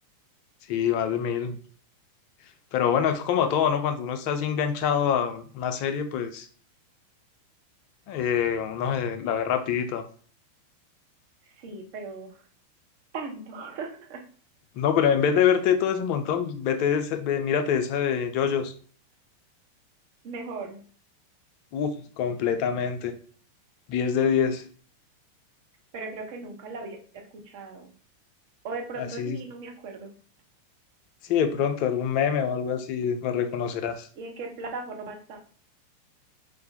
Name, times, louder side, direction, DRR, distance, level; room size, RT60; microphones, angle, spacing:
voice 1, 0.7-1.6 2.7-6.5 8.1-10.0 14.8-18.7 21.7-23.1 23.9-24.6 29.0-29.4 31.3-34.1, left 8 dB, 45° left, 7 dB, 0.4 m, -25 dB
voice 2, 11.4-12.4 13.1-14.2 15.2-15.5 20.2-20.8 25.9-27.9 28.6-30.1 34.2-35.4, right 3 dB, 50° right, 3 dB, 0.6 m, -38 dB
2.4 x 2.0 x 2.6 m, 0.44 s
figure-of-eight pair, 90°, 0 cm